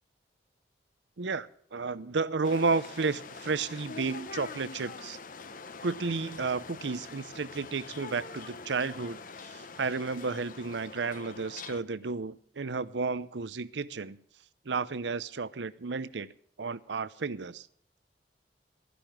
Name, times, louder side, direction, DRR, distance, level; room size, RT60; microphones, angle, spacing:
voice 1, 1.2-5.2 5.8-14.2 14.7-16.3 16.6-17.7, right 4 dB, 80° right, 17 dB, 0.7 m, -32 dB
sound 1, 2.4-11.8, left 4 dB, 50° left, 0.9 m, -44 dB
14.0 x 10.5 x 6.0 m, 0.63 s
head